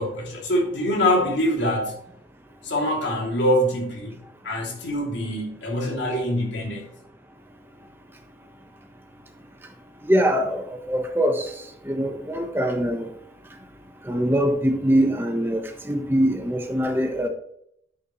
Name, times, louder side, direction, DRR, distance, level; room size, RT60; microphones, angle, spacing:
voice 1, 0.0-1.9 2.6-4.1 4.4-6.9, equal, 90° left, -1 dB, 3.0 m, -24 dB
voice 2, 10.1-11.5 11.8-13.1 14.0-17.3, equal, 10° right, 3 dB, 1.2 m, -23 dB
9.8 x 8.1 x 3.2 m, 0.71 s
head